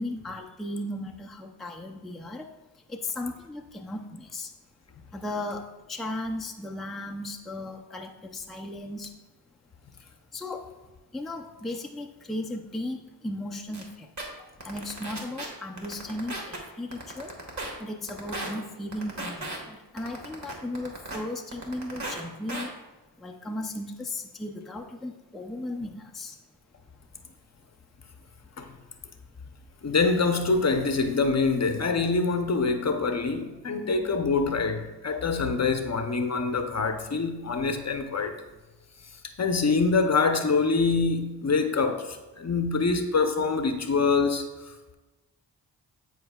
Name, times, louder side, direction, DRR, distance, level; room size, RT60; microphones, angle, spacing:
voice 1, 0.0-4.5 5.1-9.2 10.0-10.7 11.1-14.1 14.6-17.4 17.8-22.7 23.2-26.4 28.4-28.5, left 1 dB, ahead, 0.5 m, -36 dB
sound 1, 13.7-13.8 14.2-14.3 14.6-15.4 15.8-16.6 16.9-17.7 18.1-18.5 18.9-19.6 20.0-21.2 21.5-22.2 22.5-22.6, right 2 dB, 40° right, 1.6 m, -35 dB
voice 2, 29.8-38.4 39.4-45.0, left 4 dB, 35° left, 0.7 m, -25 dB
9.8 x 4.6 x 2.3 m
cardioid pair, 55°, 44 cm